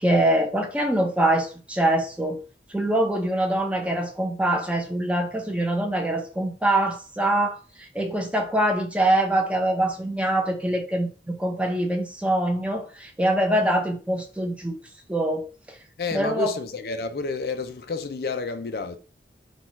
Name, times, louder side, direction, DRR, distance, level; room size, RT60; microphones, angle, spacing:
voice 1, 0.0-2.4 2.7-14.8 15.1-15.5 16.1-16.5, right 1 dB, 5° right, 0.6 m, -24 dB
voice 2, 16.0-19.0, left 4 dB, 60° left, 0.5 m, -30 dB
4.4 x 2.4 x 4.2 m
head